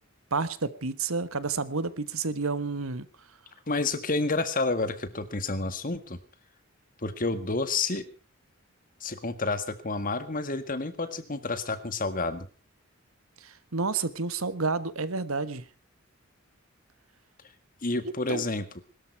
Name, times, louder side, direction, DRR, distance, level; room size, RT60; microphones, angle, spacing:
voice 1, 0.3-3.1 13.4-15.6 18.3-18.4, right 4 dB, 85° right, 14 dB, 1.4 m, -30 dB
voice 2, 3.7-6.2 7.0-8.1 9.0-12.5 17.8-18.8, left 3 dB, 40° left, 11 dB, 1.8 m, -29 dB
21.5 x 13.0 x 4.7 m, 0.35 s
head